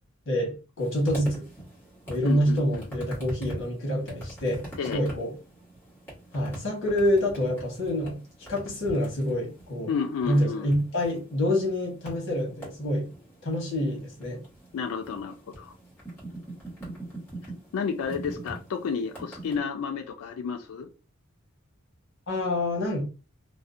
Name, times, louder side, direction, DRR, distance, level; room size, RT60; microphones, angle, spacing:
voice 1, 0.3-1.4 2.1-5.3 6.3-8.2 8.5-9.9 10.2-13.1 13.4-14.4 22.3-23.0, left 1 dB, 60° left, 1.0 m, -27 dB
sound 1, 0.8-19.6, right 1 dB, 10° left, 1.1 m, -43 dB
voice 2, 2.2-2.9 4.8-5.0 9.9-10.7 14.7-15.7 17.7-20.9, left 6 dB, 75° left, 0.3 m, -31 dB
2.6 x 2.0 x 2.5 m
head